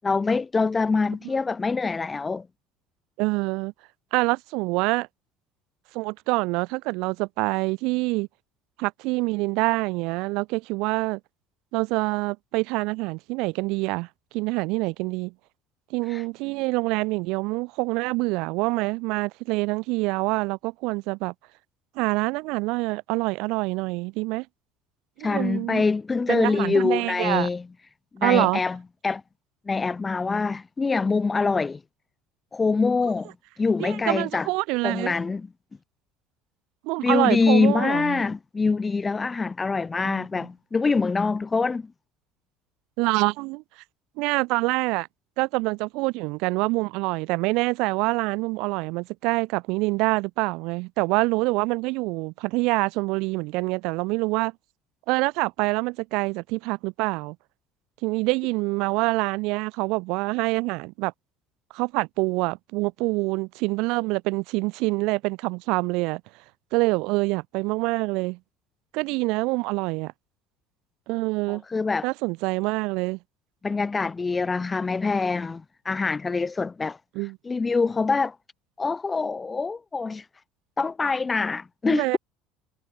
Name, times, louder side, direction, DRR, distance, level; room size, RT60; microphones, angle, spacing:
voice 1, 0.0-2.5 16.1-16.2 25.2-27.6 28.1-28.8 29.0-29.2 29.7-31.8 32.5-33.3 33.6-34.5 34.8-35.4 37.0-41.9 71.5-72.1 73.6-77.0 77.4-78.3 78.8-80.2 80.8-82.2, left 4 dB, 20° left, 1.6 m, -24 dB
voice 2, 3.2-3.7 4.1-5.1 5.9-8.3 8.8-11.2 11.7-14.1 14.3-15.3 15.9-21.3 22.0-24.5 25.2-25.8 26.3-27.5 28.2-28.6 33.8-35.1 36.8-38.2 40.1-40.3 43.0-43.6 44.2-45.1 45.4-54.5 55.1-57.4 58.0-61.1 61.7-66.2 66.7-68.4 68.9-70.1 71.1-71.6 72.0-73.2 77.2-77.4 81.9-82.2, right 25 dB, 60° right, 2.3 m, -26 dB
figure-of-eight pair, 65°, 0 cm